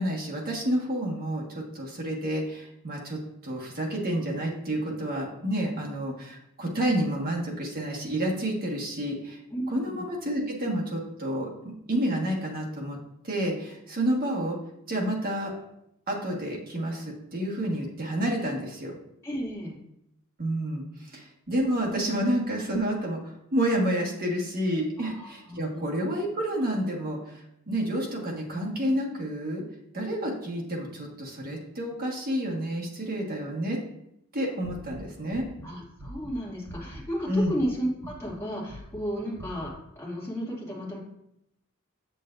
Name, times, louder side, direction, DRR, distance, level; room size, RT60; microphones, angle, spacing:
voice 1, 0.0-9.4 9.7-13.0 13.2-14.6 14.9-15.5 16.1-18.9 20.4-29.6 29.9-33.8 34.3-35.4 37.3-37.5, right 1 dB, 45° right, -2 dB, 1.5 m, -29 dB
voice 2, 9.5-10.1 19.2-19.8 25.0-25.9 35.6-41.0, equal, 15° left, -6 dB, 2.3 m, -33 dB
sound 1, 34.6-37.1 37.3-37.7 38.0-38.4 38.6-39.0 39.3-39.7, right 1 dB, 80° right, 1.2 m, -43 dB
7.3 x 6.8 x 2.6 m, 0.79 s
head